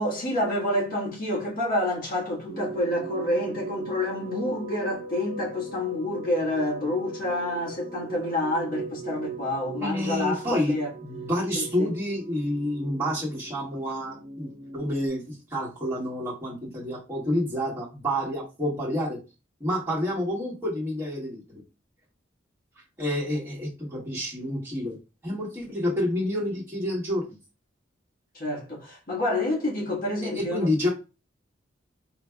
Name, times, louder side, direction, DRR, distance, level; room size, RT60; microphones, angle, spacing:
voice 1, 0.0-11.0 11.5-11.9 28.3-30.9, left 1 dB, 45° left, 1.4 m, -28 dB
sound 1, 2.5-15.1, right 4 dB, 65° right, 0.9 m, -39 dB
voice 2, 9.8-10.7 11.0-19.2 19.6-21.6 22.7-25.0 25.2-27.4 30.2-30.9, left 1 dB, 15° right, 1.7 m, -29 dB
4.5 x 3.1 x 2.3 m
head